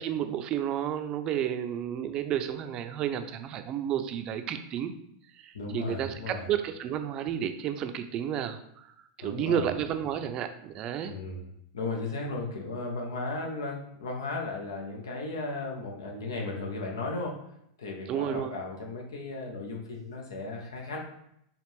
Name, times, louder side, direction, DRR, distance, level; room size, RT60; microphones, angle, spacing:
voice 1, 0.0-4.9 5.3-11.1 18.1-18.5, right 9 dB, 40° right, 8 dB, 0.5 m, -31 dB
voice 2, 5.5-6.5 9.2-9.7 11.1-11.4 11.7-17.4 17.8-21.0, left 3 dB, 80° left, 0 dB, 1.0 m, -35 dB
4.9 x 2.5 x 3.4 m, 0.75 s
hypercardioid pair, 100°, 2 cm